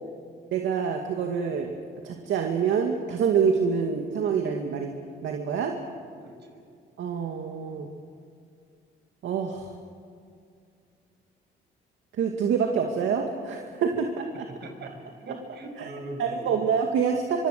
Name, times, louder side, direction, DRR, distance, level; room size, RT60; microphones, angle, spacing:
voice 1, 0.5-1.7 2.0-4.9 5.2-5.8 7.0-7.9 9.2-9.7 12.2-14.4 15.8-15.9 16.2-17.5, right 6 dB, 75° right, 2 dB, 2.2 m, -26 dB
voice 2, 6.0-6.6 14.3-16.5, right 1 dB, 60° right, 4 dB, 6.4 m, -42 dB
25.0 x 25.0 x 6.7 m, 2.3 s
cardioid pair, 90°, 20 cm